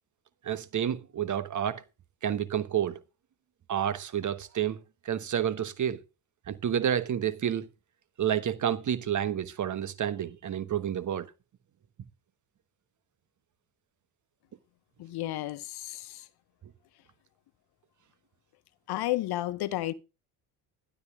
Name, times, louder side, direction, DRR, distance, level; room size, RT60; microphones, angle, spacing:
voice 1, 0.4-1.8 2.2-3.0 3.7-6.0 6.5-7.7 8.2-11.3, right 9 dB, 45° right, 1.2 m, -29 dB
voice 2, 15.0-16.3 18.9-19.9, left 15 dB, 65° left, 1.1 m, -32 dB
12.5 x 12.5 x 3.6 m
hypercardioid pair, 65°, 42 cm